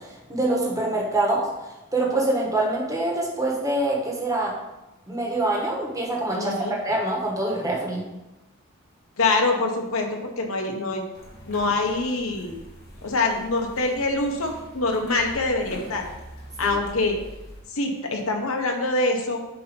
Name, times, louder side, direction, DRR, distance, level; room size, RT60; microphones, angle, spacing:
voice 1, 0.0-1.5 1.9-4.5 5.1-8.1 16.6-16.8, right 2 dB, 15° right, -3 dB, 1.3 m, -25 dB
voice 2, 6.3-6.7 9.2-11.0 11.5-12.6 13.0-16.0 16.6-17.2 17.7-19.4, left 2 dB, 80° left, 2 dB, 1.1 m, -25 dB
sound 1, 11.1-17.6, equal, 45° left, 1.8 m, -43 dB
8.3 x 2.9 x 5.2 m, 0.99 s
head